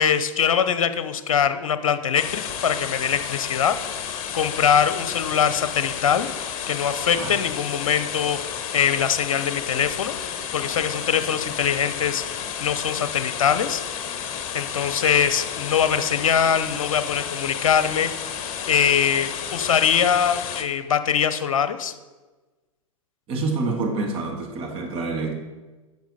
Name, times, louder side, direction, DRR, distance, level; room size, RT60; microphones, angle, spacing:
voice 1, 0.0-3.7 4.3-6.3 6.7-8.4 8.7-10.1 10.5-12.2 12.6-13.8 14.5-18.1 18.7-21.9, left 8 dB, 70° left, 11 dB, 0.7 m, -22 dB
sound 1, 2.1-20.6, left 8 dB, 40° left, 1.1 m, -32 dB
voice 2, 23.3-25.3, right 3 dB, 30° right, 2 dB, 1.9 m, -27 dB
10.5 x 6.6 x 4.1 m, 1.2 s
hypercardioid pair, 105°, 18 cm